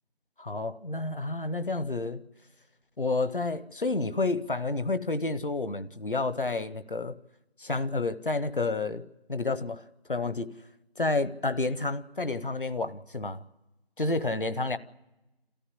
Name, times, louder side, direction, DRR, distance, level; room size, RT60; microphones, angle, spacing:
voice 1, 0.4-2.2 3.0-7.2 7.6-9.0 9.3-9.8 10.1-10.5 11.0-13.4 14.0-14.8, left 3 dB, 55° left, 13 dB, 0.9 m, -30 dB
27.5 x 14.0 x 9.7 m, 1.0 s
figure-of-eight pair, 180°, 31 cm